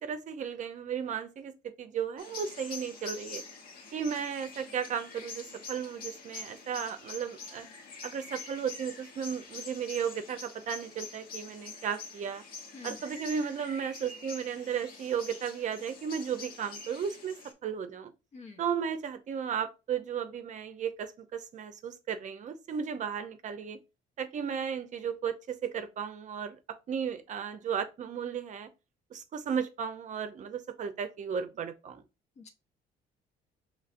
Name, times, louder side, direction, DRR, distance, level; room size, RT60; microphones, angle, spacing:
voice 1, 0.0-1.5 1.8-3.4 3.9-7.7 8.0-12.4 12.8-18.1 18.6-23.8 24.2-28.7 29.1-32.0, right 7 dB, 45° right, 0.6 m, -35 dB
sound 1, 2.2-17.5, left 4 dB, 60° left, 1.2 m, -46 dB
voice 2, 12.7-13.0 18.3-18.6 32.4-32.5, left 4 dB, 40° left, 0.8 m, -47 dB
5.3 x 3.2 x 2.5 m
cardioid pair, 110°, 17 cm